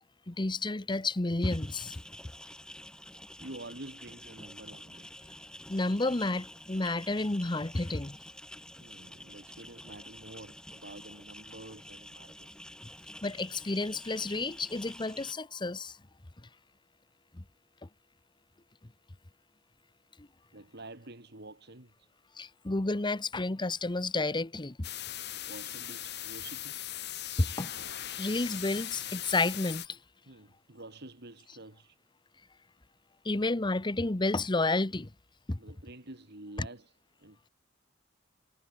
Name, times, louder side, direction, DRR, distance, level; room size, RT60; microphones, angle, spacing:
voice 1, 0.3-2.0 5.7-8.2 13.2-16.0 17.3-17.4 17.8-17.9 20.2-20.3 22.4-24.9 27.4-30.0 33.2-35.1 35.5-35.6, left 2 dB, 25° left, 0.9 m, -31 dB
sound 1, 1.4-15.3, left 1 dB, 5° left, 7.6 m, -49 dB
voice 2, 3.4-5.1 8.8-12.6 20.5-22.1 25.5-26.8 30.3-32.0 35.6-36.9 37.2-37.4, right 2 dB, 60° right, 3.6 m, -48 dB
sound 2, 24.8-29.9, left 12 dB, 60° left, 4.5 m, -39 dB
head